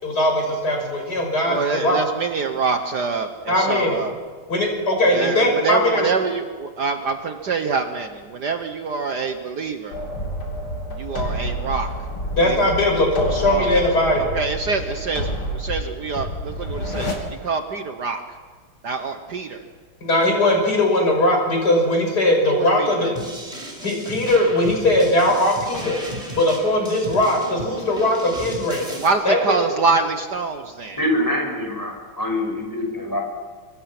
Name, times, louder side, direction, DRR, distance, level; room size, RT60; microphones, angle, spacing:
voice 1, 0.0-2.0 3.5-4.0 4.5-6.1 12.3-14.4 20.0-23.1 23.8-26.0 26.3-29.0 29.2-29.4, left 1 dB, 50° left, 1 dB, 6.6 m, -20 dB
voice 2, 1.5-4.1 5.0-10.0 10.9-11.9 12.2-12.6 13.0-13.1 13.4-13.8 14.1-18.2 18.8-19.7 22.4-23.1 29.0-31.0, right 4 dB, 55° right, 6 dB, 1.6 m, -25 dB
sound 1, 9.9-17.1, equal, 80° left, 4.3 m, -28 dB
sound 2, 23.1-29.1, right 1 dB, 15° right, 5.0 m, -35 dB
voice 3, 31.0-33.2, left 1 dB, 10° left, 1 dB, 6.3 m, -24 dB
26.0 x 25.0 x 6.1 m, 1.5 s
omnidirectional pair, 2.3 m